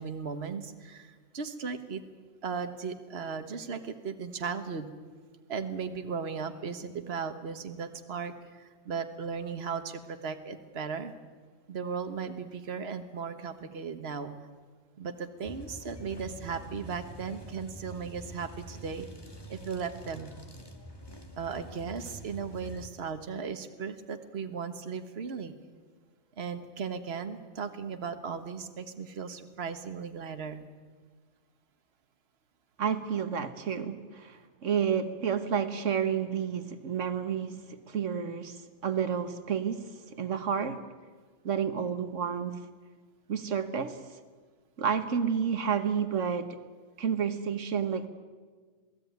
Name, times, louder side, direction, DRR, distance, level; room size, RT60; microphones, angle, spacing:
voice 1, 0.0-2.0 2.4-4.9 5.5-11.1 11.7-14.3 15.0-19.1 19.5-20.3 21.4-25.5 26.4-30.6, right 5 dB, 55° right, 8 dB, 1.6 m, -36 dB
sound 1, 15.4-22.9, equal, 20° left, 1.9 m, -46 dB
voice 2, 32.8-40.8 41.4-42.6 43.3-44.0 44.8-46.6 47.0-48.1, right 7 dB, 75° right, 9 dB, 1.5 m, -30 dB
27.5 x 18.5 x 9.4 m, 1.5 s
omnidirectional pair, 1.3 m